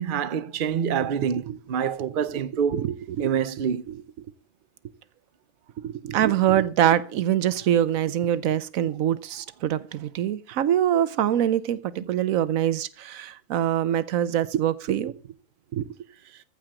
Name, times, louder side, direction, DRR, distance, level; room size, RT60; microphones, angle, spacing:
voice 1, 0.0-2.8 3.2-3.8, right 7 dB, 45° right, 0.8 m, -26 dB
voice 2, 2.7-3.3 3.9-4.0 5.8-15.1 15.7-15.9, right 11 dB, 85° right, 1.1 m, -24 dB
14.5 x 5.0 x 7.6 m
omnidirectional pair, 1.4 m